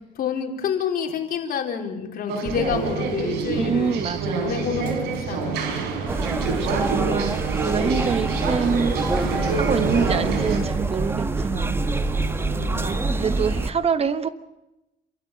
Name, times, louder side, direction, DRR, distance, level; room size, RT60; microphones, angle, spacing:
voice 1, 0.2-4.0 4.4-5.9 6.3-6.6 12.5-13.0, left 7 dB, 60° left, 3 dB, 4.1 m, -29 dB
sound 1, 2.3-10.6, right 3 dB, 90° right, 4.8 m, -28 dB
sound 2, 2.4-13.7, right 8 dB, 55° right, 1.6 m, -33 dB
voice 2, 3.5-4.5 6.5-7.4 7.6-9.0 9.5-11.8 12.7-14.3, right 6 dB, 35° right, 13 dB, 1.2 m, -26 dB
sound 3, 6.1-13.7, right 2 dB, 15° right, 1.1 m, -26 dB
28.0 x 13.5 x 8.8 m, 0.94 s
cardioid pair, 110°, 17 cm